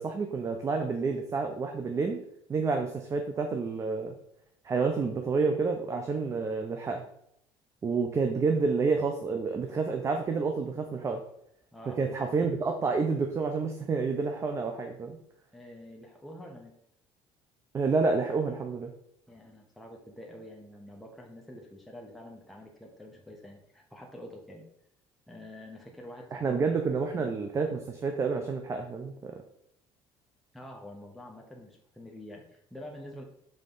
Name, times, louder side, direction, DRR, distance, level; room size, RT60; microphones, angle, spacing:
voice 1, 0.0-2.2 2.5-4.1 4.6-7.0 7.8-11.2 12.0-15.2 17.7-18.9 26.3-29.4, right 4 dB, 30° right, 4 dB, 0.6 m, -29 dB
voice 2, 11.7-12.2 15.5-16.7 19.3-24.7 25.3-26.6 27.1-27.4 30.5-33.2, left 1 dB, ahead, -1 dB, 0.9 m, -47 dB
5.6 x 3.7 x 5.4 m, 0.73 s
cardioid pair, 135°, 10 cm